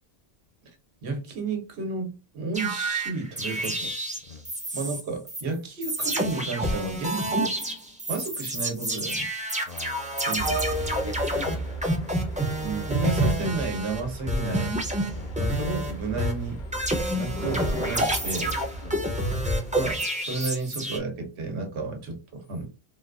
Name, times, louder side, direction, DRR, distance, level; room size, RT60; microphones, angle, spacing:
voice 1, 1.0-3.9 4.7-7.7 8.1-9.3 10.2-10.6 12.6-14.7 15.4-16.6 17.1-18.6 19.8-22.7, right 3 dB, 85° right, 1.1 m, -32 dB
sound 1, 2.5-5.0 5.3-5.4 5.8-14.0 14.3-15.9 16.2-21.0, right 1 dB, 10° right, 0.5 m, -28 dB
voice 2, 9.7-10.2 10.9-11.9 15.1-15.3 18.8-19.1, left 3 dB, 45° left, 0.5 m, -42 dB
sound 2, 10.3-20.0, right 1 dB, 70° left, 1.0 m, -36 dB
3.8 x 2.3 x 2.4 m
omnidirectional pair, 1.1 m